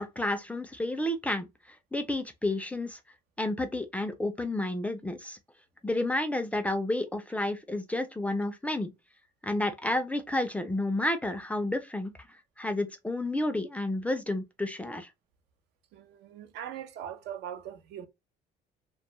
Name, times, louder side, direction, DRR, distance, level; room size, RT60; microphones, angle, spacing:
voice 1, 0.0-1.5 1.9-3.0 3.4-5.4 5.8-8.9 9.4-12.1 12.6-15.1, left 1 dB, 10° left, 0.3 m, -30 dB
voice 2, 15.9-18.1, right 9 dB, 85° right, 0.4 m, -41 dB
2.1 x 2.1 x 2.9 m
cardioid pair, 110°, 17 cm